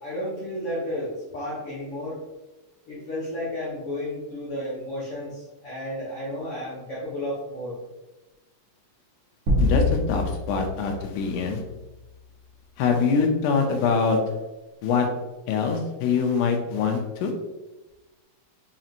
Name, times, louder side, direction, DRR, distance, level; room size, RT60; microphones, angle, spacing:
voice 1, 0.0-2.2 2.9-7.8, left 1 dB, 65° left, -7 dB, 1.5 m, -32 dB
sound 1, 9.5-12.0, left 2 dB, 70° right, 1.3 m, -26 dB
voice 2, 9.6-11.6 12.8-14.2 14.8-15.1 15.5-17.3, left 5 dB, 85° left, 3 dB, 2.1 m, -24 dB
5.3 x 3.0 x 2.4 m, 1.1 s
omnidirectional pair, 3.4 m